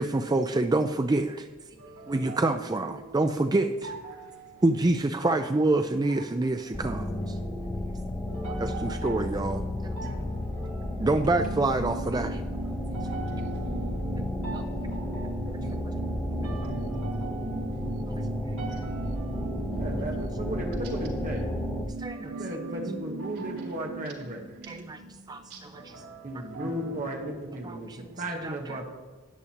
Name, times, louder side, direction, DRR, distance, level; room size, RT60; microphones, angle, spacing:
voice 1, 0.0-1.5 2.1-3.7 4.6-7.4 8.8-9.6 11.0-12.4 15.8-15.9 18.2-18.3 22.0-22.3 24.7-25.0 25.3-25.4 27.6-28.0 28.4-28.8, right 2 dB, 20° right, 0.3 m, -26 dB
voice 2, 1.8-4.7 5.2-5.4 6.0-6.9 7.2-11.2 12.8-20.9 22.1-28.3 28.7-28.8, right 3 dB, 85° right, 3.6 m, -44 dB
sound 1, 6.7-21.9, left 1 dB, 10° left, 0.8 m, -33 dB
sound 2, 10.8-25.8 26.1-26.2, right 3 dB, 60° right, 0.6 m, -39 dB
voice 3, 19.8-21.4 22.2-24.4 26.2-27.9 28.2-28.9, right 1 dB, 35° right, 1.2 m, -35 dB
13.5 x 10.0 x 2.9 m
head